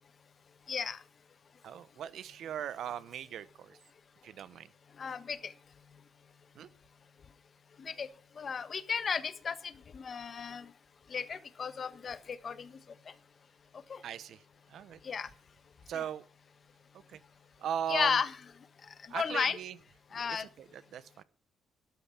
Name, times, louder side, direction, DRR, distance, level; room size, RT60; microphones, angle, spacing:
voice 1, 0.7-1.0 5.0-5.5 7.8-8.1 8.4-10.7 11.1-12.7 13.9-14.0 15.0-15.3 15.9-16.0 17.9-18.3 19.1-19.6 20.1-20.5, left 6 dB, 35° left, 1.3 m, -34 dB
voice 2, 1.6-3.8 4.2-4.7 6.5-6.7 14.0-14.4 14.7-15.0 15.9-16.2 17.1-17.2 17.6-18.2 19.1-19.8 20.2-21.2, right 9 dB, 65° right, 1.1 m, -39 dB
13.5 x 12.5 x 6.0 m
cardioid pair, 150°, 0 cm